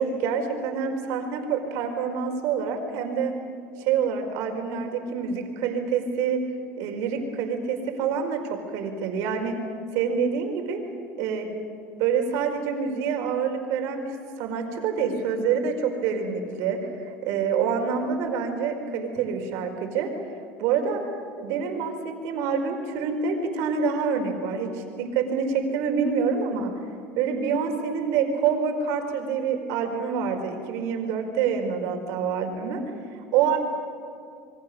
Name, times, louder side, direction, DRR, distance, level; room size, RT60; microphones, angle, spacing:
voice 1, 0.0-3.3 3.8-6.4 6.8-9.5 9.9-10.8 11.2-11.5 12.0-20.1 20.6-21.0 21.4-26.7 27.1-32.8 33.3-33.6, right 6 dB, 70° right, 4 dB, 5.0 m, -26 dB
28.0 x 23.5 x 6.9 m, 2.4 s
supercardioid pair, 125°, 5 cm